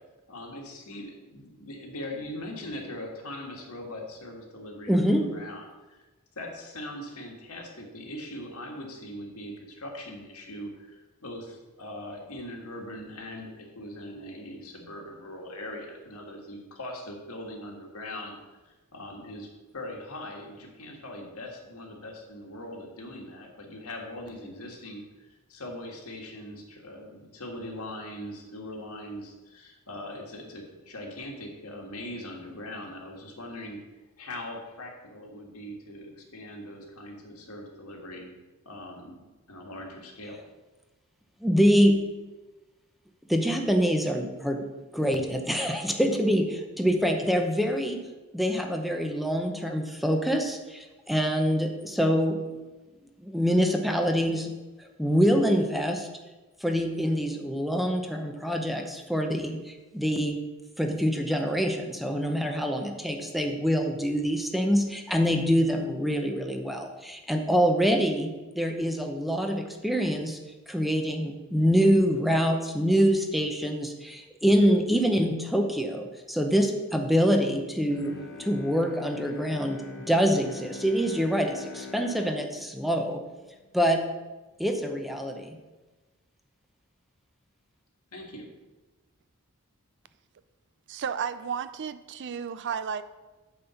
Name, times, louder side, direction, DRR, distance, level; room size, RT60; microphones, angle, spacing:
voice 1, 0.3-6.1 6.4-18.3 18.7-33.8 34.2-38.3 38.7-39.2 39.5-40.4 88.1-88.5, left 1 dB, 75° left, 1 dB, 1.7 m, -41 dB
voice 2, 4.9-5.2 41.4-42.0 43.3-44.6 44.9-48.0 48.3-52.4 53.2-54.5 55.0-56.1 56.6-60.4 60.8-70.4 70.7-78.1 78.4-83.2 83.7-84.0 84.6-85.6, equal, ahead, 3 dB, 0.7 m, -25 dB
Bowed string instrument, 77.8-84.1 84.5-84.6, left 4 dB, 55° left, 1.1 m, -44 dB
voice 3, 90.9-93.0, right 7 dB, 55° right, 14 dB, 0.4 m, -33 dB
8.7 x 4.3 x 6.9 m, 1.2 s
head